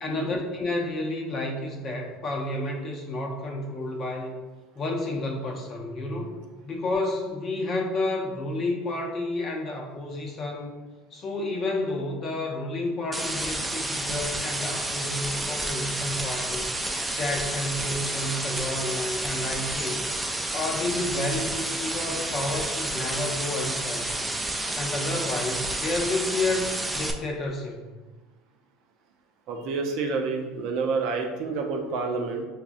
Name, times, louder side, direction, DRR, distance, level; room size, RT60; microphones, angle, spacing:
voice 1, 0.0-4.4 4.8-6.4 6.6-10.8 11.1-16.7 17.1-20.1 20.5-24.2 24.8-26.7 26.9-27.8, left 2 dB, 45° left, -1 dB, 0.6 m, -30 dB
sound 1, 13.1-27.1, right 1 dB, 10° right, 0.4 m, -30 dB
voice 2, 29.5-32.5, right 4 dB, 65° right, 2 dB, 0.5 m, -28 dB
4.8 x 2.3 x 2.5 m, 1.2 s
supercardioid pair, 90°, 0 cm